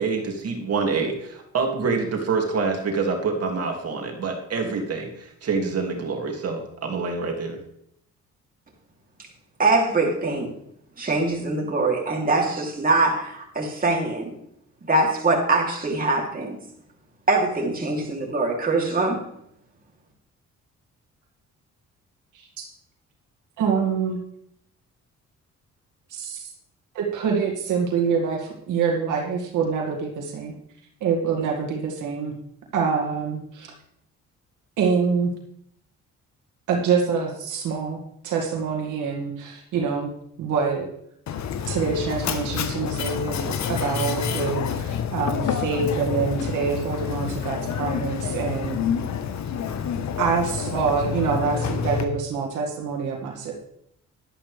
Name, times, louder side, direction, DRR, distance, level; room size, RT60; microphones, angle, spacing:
voice 1, 0.0-7.6, right 4 dB, 55° right, 2 dB, 2.4 m, -26 dB
voice 2, 9.6-10.5 11.0-14.3 14.9-16.6 17.3-19.2, right 3 dB, 30° right, -1 dB, 3.1 m, -23 dB
voice 3, 22.3-22.7 23.6-24.2 26.1-26.5 26.9-30.5 31.0-32.3 32.7-33.7 34.8-35.3 36.7-38.0 38.2-40.1 40.4-40.9 41.7-48.8 50.2-53.5, right 5 dB, 85° right, 0 dB, 2.2 m, -25 dB
Mechanisms, 41.3-52.0, left 7 dB, 65° left, 1.2 m, -28 dB
11.5 x 11.5 x 3.4 m, 0.72 s
cardioid pair, 90°, 30 cm